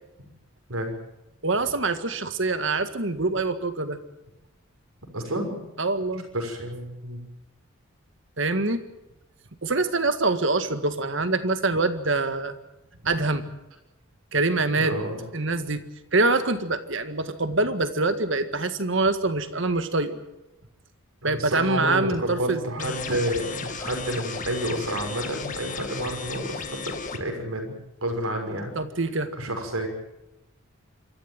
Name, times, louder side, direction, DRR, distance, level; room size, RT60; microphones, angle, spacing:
voice 1, 1.4-4.0 5.8-6.2 8.4-8.8 9.6-12.6 13.0-13.4 14.3-15.0 15.3-15.8 16.1-20.2 21.2-23.0 28.8-29.3, right 3 dB, 60° right, 10 dB, 1.8 m, -25 dB
voice 2, 5.1-5.6 6.3-7.2 14.8-15.2 21.2-27.7 28.0-28.7 29.4-29.9, right 1 dB, 85° right, 3 dB, 6.3 m, -30 dB
sound 1, 22.8-27.2, left 4 dB, 35° left, 1.9 m, -34 dB
27.0 x 14.0 x 9.1 m, 0.95 s
head